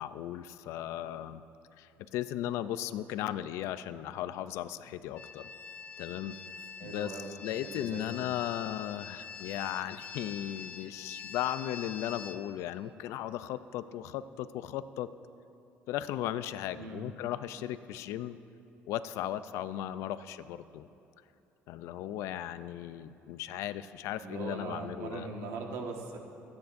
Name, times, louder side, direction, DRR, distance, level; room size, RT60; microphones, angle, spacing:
voice 1, 0.0-1.4 1.8-5.5 6.0-6.3 6.8-7.1 7.4-15.1 15.9-18.4 18.9-20.9 21.7-25.3, left 12 dB, 75° left, 13 dB, 0.4 m, -36 dB
sound 1, 5.2-12.4, left 6 dB, 35° left, 0.7 m, -45 dB
voice 2, 6.8-7.3 7.6-8.3 16.8-17.0 24.2-26.2, right 3 dB, 80° right, 1 dB, 1.5 m, -40 dB
24.5 x 9.6 x 2.6 m, 2.9 s
cardioid pair, 150°, 5 cm